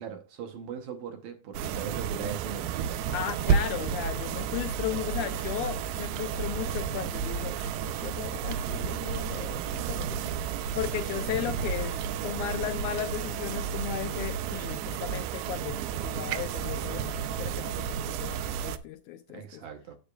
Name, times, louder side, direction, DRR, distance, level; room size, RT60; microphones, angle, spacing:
voice 1, 0.0-3.0 19.3-20.0, right 6 dB, 70° right, 1.9 m, -39 dB
sound 1, 1.5-18.8, right 7 dB, 85° right, 2.3 m, -32 dB
voice 2, 3.1-10.5 10.8-19.6, left 12 dB, 80° left, 1.8 m, -36 dB
9.8 x 7.7 x 2.3 m
omnidirectional pair, 3.9 m